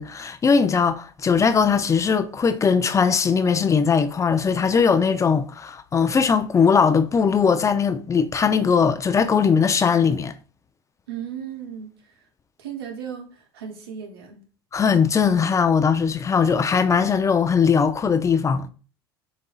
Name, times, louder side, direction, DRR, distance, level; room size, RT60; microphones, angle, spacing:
voice 1, 0.0-10.3 14.7-18.7, left 6 dB, 25° left, 0.4 m, -20 dB
voice 2, 11.1-12.3 12.6-14.4, right 8 dB, 75° right, 0.9 m, -36 dB
7.1 x 2.7 x 2.4 m
hypercardioid pair, 70°, 13 cm